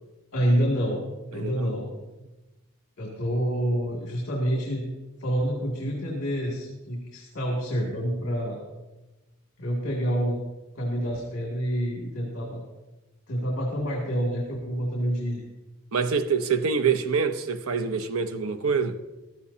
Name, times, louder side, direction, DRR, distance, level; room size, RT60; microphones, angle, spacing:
voice 1, 0.3-1.0 1.3-1.9 3.0-4.8 5.2-8.6 9.6-10.4 10.8-12.6 13.3-15.4, equal, 60° left, 2.4 m, -27 dB
voice 2, 1.3-1.7 15.9-19.0, right 5 dB, 80° right, 0.7 m, -25 dB
15.5 x 13.0 x 2.8 m
head